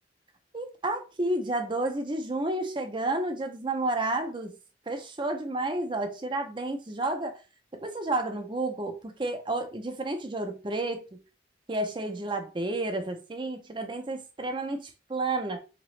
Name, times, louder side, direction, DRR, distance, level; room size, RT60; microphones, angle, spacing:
voice 1, 0.5-4.5 4.9-7.4 7.7-11.2 11.7-15.6, right 2 dB, 25° right, 0.6 m, -31 dB
3.8 x 3.0 x 3.2 m
head